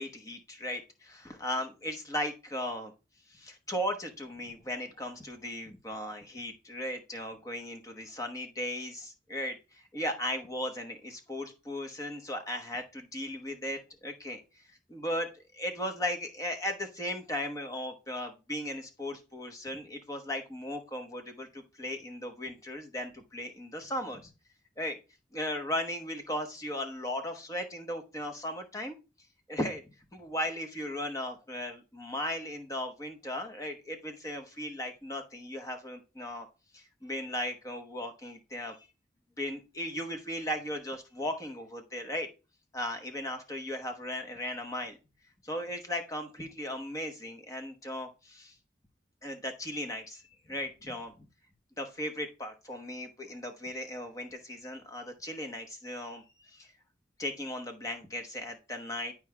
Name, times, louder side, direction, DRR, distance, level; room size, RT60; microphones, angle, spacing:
voice 1, 0.0-2.9 3.3-24.3 24.8-25.0 25.3-29.0 29.5-29.8 30.1-36.5 36.7-38.9 39.4-42.3 42.7-45.0 45.4-48.6 49.2-51.3 51.8-56.7 57.2-59.1, left 1 dB, 20° left, 4 dB, 0.9 m, -37 dB
11.0 x 4.8 x 2.2 m, 0.30 s
head